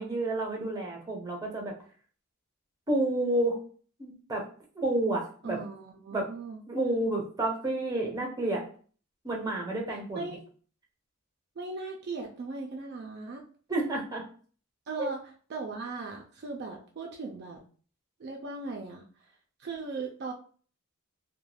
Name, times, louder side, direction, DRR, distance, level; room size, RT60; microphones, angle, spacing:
voice 1, 0.0-1.7 2.9-3.6 4.0-4.5 4.8-5.6 6.1-6.3 6.7-8.7 9.2-10.3 13.7-14.3 15.0-15.1, right 2 dB, 15° right, 0 dB, 0.7 m, -30 dB
voice 2, 5.4-6.6 9.9-10.4 11.6-13.4 14.9-15.2 15.5-17.6 18.2-19.0 19.6-20.3, right 3 dB, 50° right, 1 dB, 0.3 m, -38 dB
2.3 x 2.1 x 3.1 m, 0.42 s
head